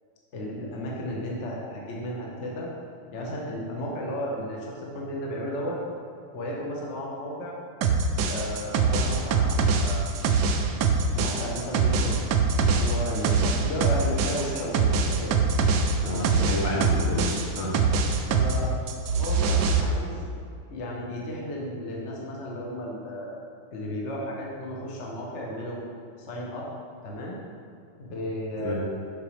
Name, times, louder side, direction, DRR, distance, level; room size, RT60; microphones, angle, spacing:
voice 1, 0.3-2.7 3.1-5.8 6.3-7.6 8.3-10.1 11.1-14.9 15.1-15.4 16.1-16.5 18.3-18.7 19.1-20.2 20.7-23.4 23.7-25.8 26.2-26.7 27.0-27.4 28.0-28.7, equal, 45° left, -3 dB, 1.0 m, -34 dB
sound 1, 7.8-18.6 18.9-19.8, right 4 dB, 85° right, 0.9 m, -23 dB
voice 2, 16.0-17.7 28.6-28.7, left 2 dB, 85° left, -3 dB, 2.0 m, -30 dB
6.9 x 5.3 x 3.2 m, 2.5 s
omnidirectional pair, 2.3 m